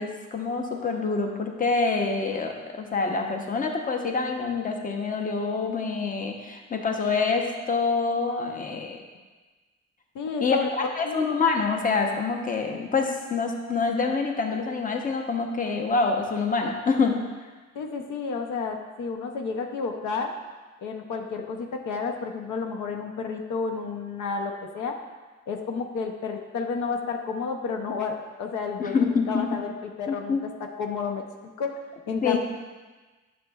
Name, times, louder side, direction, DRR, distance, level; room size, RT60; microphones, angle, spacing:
voice 1, 0.0-9.0 10.4-17.2 28.8-29.5 30.1-30.4 32.2-32.4, left 4 dB, 30° left, 3 dB, 0.8 m, -26 dB
voice 2, 10.1-10.7 11.0-11.2 17.7-20.3 20.8-25.0 25.5-30.4 30.8-31.2 31.6-31.7 32.1-32.4, left 5 dB, 80° left, 4 dB, 0.7 m, -31 dB
8.5 x 6.4 x 2.4 m, 1.3 s
cardioid pair, 90°, 30 cm